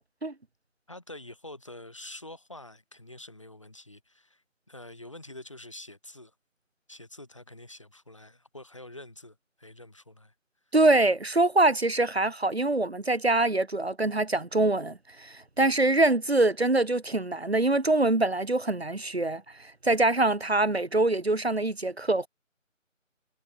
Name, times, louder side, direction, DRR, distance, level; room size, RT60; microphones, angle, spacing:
voice 1, 0.9-6.3 6.9-10.3, left 1 dB, 25° left, 2.9 m, -46 dB
voice 2, 10.7-22.3, right 2 dB, 50° right, 1.0 m, -24 dB
figure-of-eight pair, 175°, 39 cm